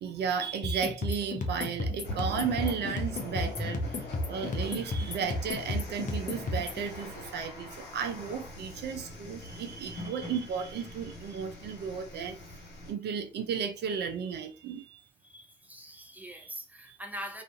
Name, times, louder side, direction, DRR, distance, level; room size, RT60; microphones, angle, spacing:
voice 1, 0.0-12.4 12.9-15.0 16.4-16.5 16.9-17.0, right 6 dB, 55° right, 0.5 m, -34 dB
sound 1, 0.6-6.8, left 2 dB, 40° left, 0.6 m, -33 dB
sound 2, 2.0-12.9, left 2 dB, 60° left, 1.1 m, -43 dB
voice 2, 15.2-17.4, equal, 10° right, 0.8 m, -43 dB
2.4 x 2.4 x 2.5 m
hypercardioid pair, 45°, 21 cm